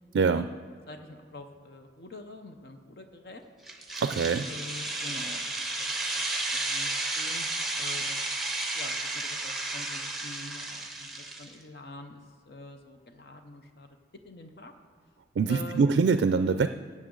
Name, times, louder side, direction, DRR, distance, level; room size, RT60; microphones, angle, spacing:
voice 1, 0.1-0.5 4.0-4.5 15.4-16.7, right 5 dB, 85° right, 10 dB, 0.3 m, -24 dB
voice 2, 0.9-3.4 4.5-6.2 6.5-7.5 7.8-10.9 11.2-13.9 14.1-14.7 15.5-15.9, left 2 dB, 60° left, 6 dB, 0.7 m, -46 dB
sound 1, 3.7-11.5, right 2 dB, ahead, 0.7 m, -33 dB
16.0 x 7.4 x 3.8 m, 2.1 s
head